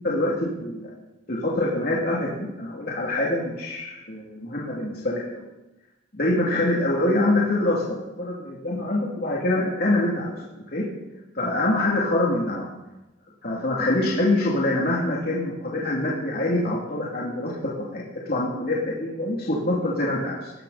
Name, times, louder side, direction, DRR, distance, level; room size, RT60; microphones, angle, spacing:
voice 1, 0.0-0.9 1.3-5.4 6.1-7.8 8.2-10.3 10.7-10.8 11.3-12.7 13.4-20.5, left 1 dB, 50° left, -5 dB, 3.1 m, -25 dB
19.0 x 14.5 x 4.3 m, 0.99 s
head